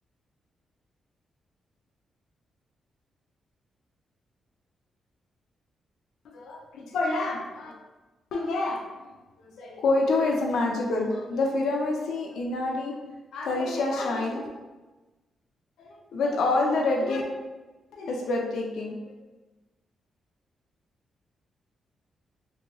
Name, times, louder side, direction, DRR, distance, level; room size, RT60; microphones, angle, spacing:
voice 1, 6.3-7.7 8.3-8.9 9.6-12.9 13.3-14.5 15.8-17.2 17.9-19.1, left 2 dB, 90° left, 0 dB, 0.4 m, -27 dB
2.9 x 2.6 x 2.8 m, 1.2 s
wide cardioid pair, 175°, 0 cm